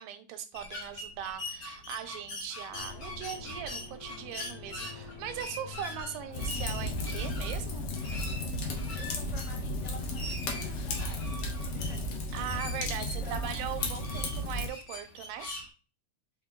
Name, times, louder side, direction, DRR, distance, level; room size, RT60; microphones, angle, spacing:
voice 1, 0.0-7.8 12.3-15.5, right 10 dB, 85° right, 8 dB, 2.2 m, -40 dB
sound 1, 0.5-15.7, left 2 dB, 55° left, 1.4 m, -43 dB
sound 2, 2.7-12.2, left 3 dB, 90° left, 2.9 m, -48 dB
Fire, 6.3-14.7, left 1 dB, 70° left, 1.5 m, -34 dB
voice 2, 8.9-11.3 11.7-12.4 12.9-13.5, equal, 30° left, -4 dB, 1.3 m, -49 dB
5.7 x 4.1 x 2.2 m, 0.33 s
omnidirectional pair, 3.9 m